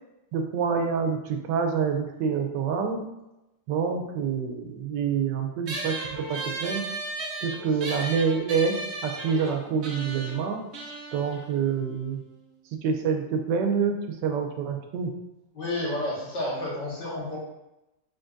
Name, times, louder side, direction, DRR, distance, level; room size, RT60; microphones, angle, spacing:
voice 1, 0.3-3.1 3.7-6.0 6.3-6.8 7.4-10.7 11.1-12.2 12.8-15.2, right 6 dB, 85° right, 4 dB, 1.3 m, -27 dB
sound 1, 5.7-12.5, right 2 dB, 55° right, 0.8 m, -36 dB
voice 2, 15.5-17.4, left 1 dB, 85° left, -5 dB, 2.2 m, -31 dB
5.1 x 4.0 x 2.5 m, 0.93 s
omnidirectional pair, 1.8 m